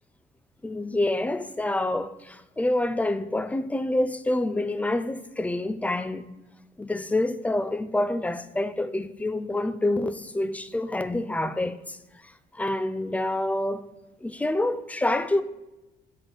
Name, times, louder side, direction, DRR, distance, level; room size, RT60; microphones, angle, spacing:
voice 1, 0.6-6.3 6.8-12.0 12.6-13.8 14.2-15.4, left 1 dB, 10° left, 0.4 m, -27 dB
6.2 x 4.2 x 6.5 m
cardioid pair, 110°, 17 cm